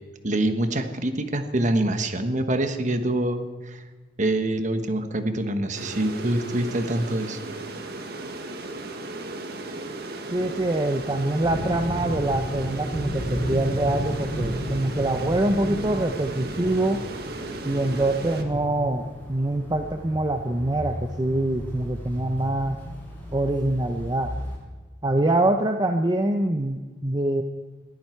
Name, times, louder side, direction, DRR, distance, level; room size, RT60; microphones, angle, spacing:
voice 1, 0.2-3.8 4.2-7.4, right 1 dB, 45° right, 8 dB, 1.3 m, -25 dB
sound 1, 5.7-18.4, right 2 dB, 65° right, 1.6 m, -36 dB
voice 2, 10.3-17.0 17.6-22.8 23.3-24.3 25.0-27.4, right 1 dB, 25° right, 5 dB, 0.7 m, -24 dB
sound 2, 10.4-24.6, equal, 10° left, 6.9 m, -34 dB
20.5 x 14.5 x 4.6 m, 1.3 s
head